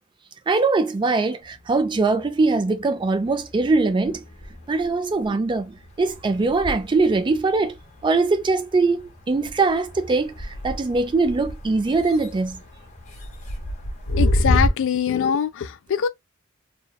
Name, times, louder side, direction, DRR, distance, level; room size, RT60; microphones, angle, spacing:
voice 1, 0.5-4.2 4.7-7.7 8.0-12.6, right 3 dB, 20° right, 0.3 m, -22 dB
sound 1, 1.4-2.7 3.0-14.7, left 1 dB, 35° left, 0.8 m, -30 dB
voice 2, 14.1-16.1, left 7 dB, 60° left, 0.4 m, -23 dB
2.8 x 2.2 x 2.3 m
head